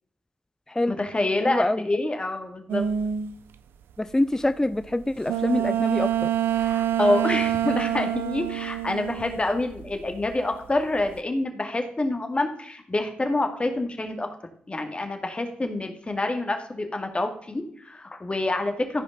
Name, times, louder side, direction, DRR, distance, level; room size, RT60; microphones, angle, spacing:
voice 1, 0.9-2.9 6.6-14.3 14.7-19.0, left 2 dB, 30° left, 5 dB, 2.0 m, -27 dB
voice 2, 1.4-1.9 4.0-6.3, left 1 dB, 15° left, 12 dB, 0.5 m, -25 dB
sound 1, 2.7-3.3 5.3-9.9 10.2-11.0, right 10 dB, 80° right, 0.5 m, -26 dB
14.5 x 5.1 x 4.0 m, 0.63 s
supercardioid pair, 45°, 4 cm